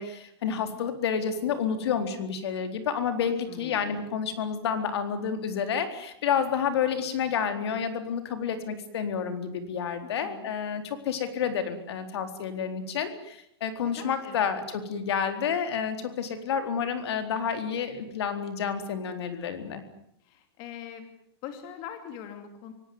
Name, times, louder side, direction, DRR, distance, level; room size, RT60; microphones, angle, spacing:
voice 1, 0.0-19.8, left 7 dB, 75° left, 8 dB, 4.1 m, -30 dB
voice 2, 3.5-4.1 10.0-10.5 13.9-14.5 20.2-21.1 21.4-22.7, left 8 dB, 35° left, 7 dB, 2.8 m, -42 dB
25.0 x 18.5 x 9.7 m, 0.76 s
supercardioid pair, 170°, 14 cm